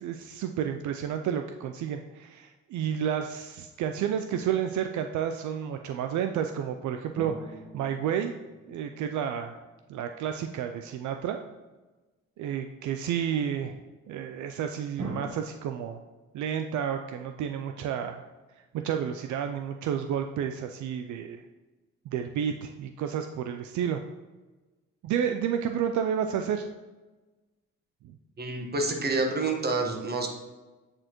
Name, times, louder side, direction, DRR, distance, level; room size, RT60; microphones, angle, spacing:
voice 1, 0.0-8.3 8.7-9.6 9.9-11.4 12.4-13.8 14.1-16.0 16.3-18.2 18.7-21.4 22.1-24.0 25.0-26.7, right 8 dB, 75° right, 6 dB, 0.4 m, -31 dB
sound 1, 7.2-10.1 15.0-15.3, right 2 dB, 55° right, 1.7 m, -42 dB
voice 2, 28.4-30.3, right 3 dB, 30° right, 2 dB, 1.3 m, -28 dB
8.8 x 4.2 x 3.0 m, 1.2 s
cardioid pair, 90°, 30 cm